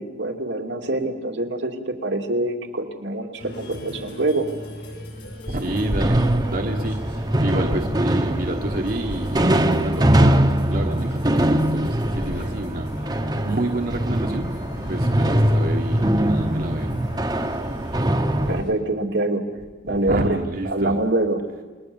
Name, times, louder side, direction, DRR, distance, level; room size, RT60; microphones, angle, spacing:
voice 1, 0.0-4.5 18.5-19.4 19.8-20.4 20.6-21.4, right 2 dB, 85° right, 3 dB, 2.7 m, -25 dB
sound 1, 3.4-18.7, equal, 75° left, 6.9 m, -37 dB
voice 2, 5.4-6.2 6.5-17.0 19.9-21.0, right 1 dB, 50° right, 2 dB, 1.4 m, -29 dB
sound 2, 5.6-18.6, right 1 dB, 25° right, 1.1 m, -22 dB
29.5 x 21.0 x 7.1 m, 1.3 s
head